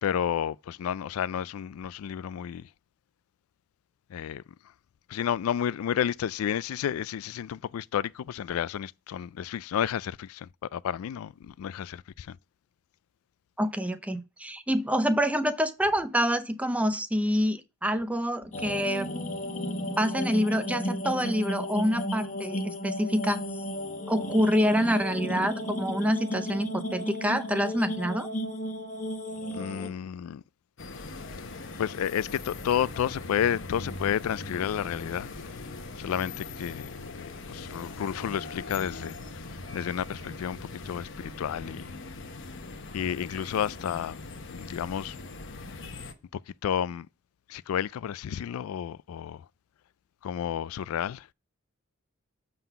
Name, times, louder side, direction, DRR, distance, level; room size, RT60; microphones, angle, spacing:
voice 1, 0.0-2.7 4.1-4.4 5.1-12.4 29.5-30.4 31.3-31.5 31.8-36.9 37.1-40.6 40.8-41.9 42.9-44.2 44.5-45.2 46.3-47.1 47.5-49.5 50.2-51.3, left 9 dB, 85° left, 0.3 m, -31 dB
voice 2, 13.6-19.1 20.0-23.4 24.1-28.3, equal, 5° right, 0.6 m, -27 dB
sound 1, 18.5-29.9, left 1 dB, 40° left, 1.1 m, -34 dB
sound 2, 30.8-46.1, left 3 dB, 65° left, 1.0 m, -41 dB
7.3 x 3.9 x 5.6 m
head